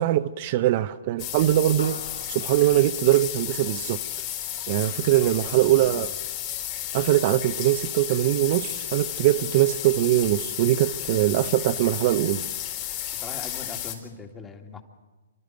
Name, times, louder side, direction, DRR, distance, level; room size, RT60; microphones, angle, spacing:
voice 1, 0.0-2.0 2.3-4.0 4.7-6.1 6.9-12.4, right 15 dB, 45° right, 0.6 m, -22 dB
sound 1, 1.2-14.0, left 12 dB, 35° left, 4.2 m, -33 dB
sound 2, 1.8-4.5, left 4 dB, 75° left, 4.1 m, -47 dB
voice 2, 4.9-6.1 11.1-11.6 13.1-14.8, left 4 dB, 15° left, 2.1 m, -42 dB
28.0 x 12.5 x 7.8 m
hypercardioid pair, 135°, 0 cm